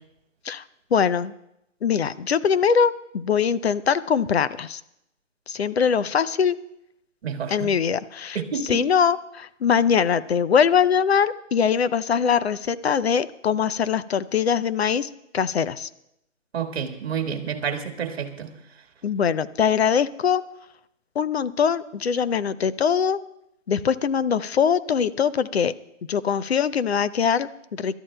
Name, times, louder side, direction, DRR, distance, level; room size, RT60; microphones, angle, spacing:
voice 1, 0.9-1.3 1.8-4.8 5.5-6.6 7.5-15.9 19.0-20.4 21.2-23.2 23.7-25.7 26.1-28.0, left 7 dB, 55° left, 15 dB, 0.6 m, -22 dB
voice 2, 7.2-7.7 8.4-8.8 16.5-18.5, right 7 dB, 55° right, 5 dB, 1.7 m, -29 dB
27.0 x 13.0 x 2.2 m, 0.83 s
hypercardioid pair, 170°, 39 cm